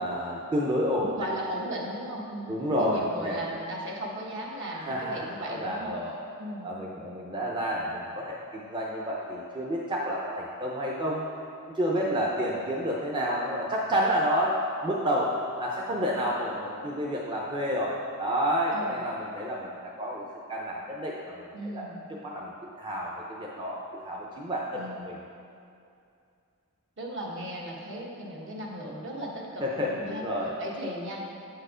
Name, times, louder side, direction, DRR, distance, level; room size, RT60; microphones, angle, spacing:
voice 1, 0.0-1.3 2.5-3.5 4.7-6.1 6.6-11.3 11.6-20.2 20.5-21.9 22.2-22.5 22.8-25.2 29.6-30.6, equal, 20° right, -3 dB, 0.6 m, -30 dB
voice 2, 0.9-6.0 6.4-6.7 12.0-12.2 18.7-19.0 21.5-22.1 24.7-25.1 27.0-30.2 30.6-31.2, equal, 55° right, -2 dB, 1.2 m, -36 dB
8.6 x 4.5 x 5.0 m, 2.5 s
head